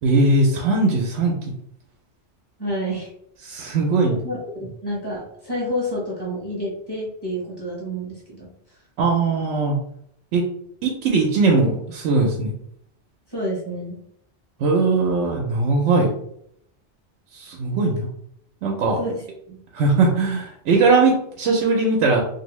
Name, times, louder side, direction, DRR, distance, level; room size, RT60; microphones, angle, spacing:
voice 1, 0.0-1.5 3.4-4.2 9.0-9.7 10.3-10.4 10.8-12.5 14.6-16.1 17.3-18.1 18.6-19.0 19.7-22.2, right 3 dB, 85° right, 0 dB, 0.9 m, -19 dB
voice 2, 2.6-3.1 4.1-8.5 13.3-14.0 19.0-19.6, equal, 20° left, -5 dB, 1.0 m, -29 dB
2.6 x 2.6 x 3.0 m, 0.71 s
omnidirectional pair, 1.2 m